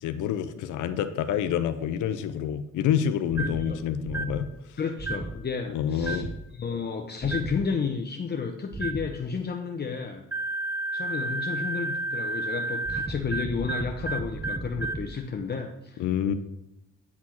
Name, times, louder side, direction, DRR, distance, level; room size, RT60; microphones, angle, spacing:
voice 1, 0.0-4.8 5.7-6.3 16.0-16.3, left 9 dB, 80° left, 10 dB, 0.6 m, -28 dB
sound 1, 3.3-3.7 4.1-4.4 5.0-5.4 6.0-6.4 7.2-7.6 8.7-9.1 10.3-15.1, right 2 dB, 10° right, 0.4 m, -31 dB
voice 2, 3.4-3.8 4.8-6.3 6.5-10.2 10.9-16.0, left 5 dB, 35° left, 3 dB, 0.7 m, -32 dB
9.6 x 4.2 x 4.3 m, 0.89 s
cardioid pair, 90°, 30 cm